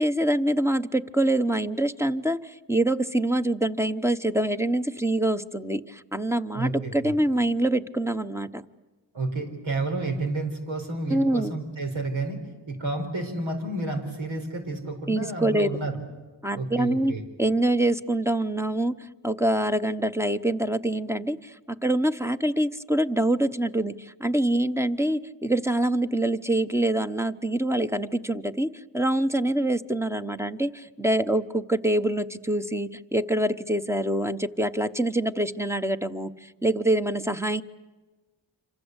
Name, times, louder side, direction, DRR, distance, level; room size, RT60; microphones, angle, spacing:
voice 1, 0.0-8.6 11.1-11.5 15.1-15.7 16.4-17.1 17.4-37.6, right 1 dB, 5° right, 10 dB, 1.0 m, -25 dB
voice 2, 6.5-7.1 9.1-12.4 12.7-16.0 16.5-17.2, right 2 dB, 90° right, 4 dB, 4.8 m, -30 dB
27.5 x 26.5 x 8.2 m, 1.3 s
cardioid pair, 65°, 45 cm